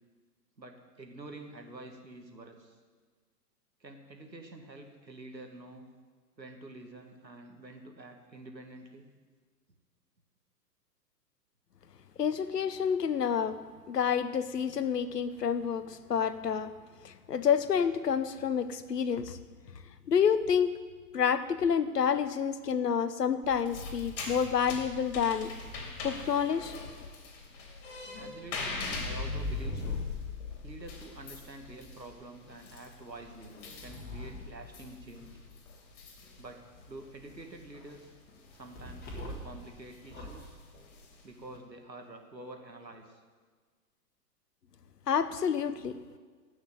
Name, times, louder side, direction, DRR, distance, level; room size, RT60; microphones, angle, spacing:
voice 1, 0.6-2.8 3.8-5.9 6.4-9.1 28.1-30.0 30.6-33.5 33.8-35.4 36.4-38.1 38.5-40.6 41.2-43.2, right 2 dB, 90° right, 4 dB, 2.2 m, -48 dB
voice 2, 12.2-13.6 13.9-16.7 17.0-19.4 20.1-20.7 21.1-25.5 26.0-26.7 45.1-46.0, left 7 dB, 75° left, 12 dB, 1.1 m, -28 dB
sound 1, 23.4-41.6, left 3 dB, 45° left, 3.5 m, -44 dB
sound 2, 28.1-32.2 33.1-35.5 38.8-39.6 40.0-40.5, left 3 dB, 20° left, 3.5 m, -40 dB
16.0 x 6.4 x 9.2 m, 1.5 s
figure-of-eight pair, 110°, 49 cm